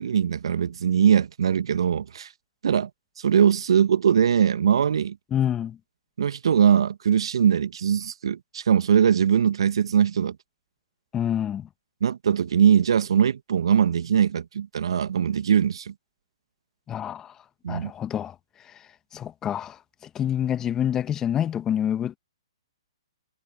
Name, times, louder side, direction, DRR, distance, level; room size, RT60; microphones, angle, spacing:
voice 1, 0.0-2.3 2.6-2.9 3.2-5.2 6.2-10.4 12.0-15.9 17.6-17.9, right 8 dB, 65° right, 1.4 m, -21 dB
voice 2, 5.3-5.8 11.1-11.7 16.9-17.3 17.7-18.3 19.1-19.8 20.1-22.2, left 10 dB, 20° left, 1.4 m, -27 dB
figure-of-eight pair, 125°, 3 cm